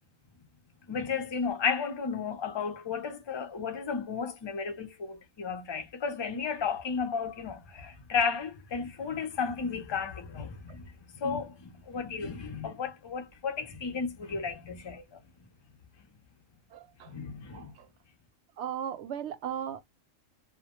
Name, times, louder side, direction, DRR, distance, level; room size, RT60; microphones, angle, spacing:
voice 1, 0.9-15.2 17.1-17.7, left 5 dB, 40° left, 0.4 m, -33 dB
voice 2, 16.7-17.1 17.5-17.6 18.6-19.8, right 9 dB, 65° right, 0.8 m, -36 dB
2.2 x 2.1 x 2.9 m
omnidirectional pair, 1.4 m